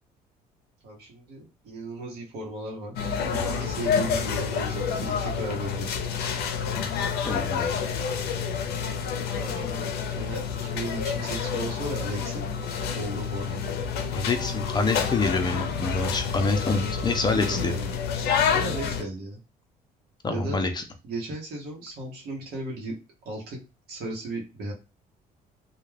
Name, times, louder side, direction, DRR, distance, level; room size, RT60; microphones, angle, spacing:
voice 1, 0.8-2.9 3.2-6.0 9.4-12.4 12.9-13.6 17.2-18.0 18.5-19.4 20.3-20.6 21.0-22.9 23.2-23.6 23.9-24.7, right 2 dB, 70° right, -2 dB, 0.9 m, -36 dB
sound 1, 3.0-19.0, left 6 dB, 70° left, 0.5 m, -28 dB
voice 2, 7.2-7.7 14.1-17.7 20.2-20.8, left 3 dB, 25° left, 5 dB, 0.6 m, -26 dB
2.3 x 2.2 x 3.2 m, 0.29 s
cardioid pair, 110°, 17 cm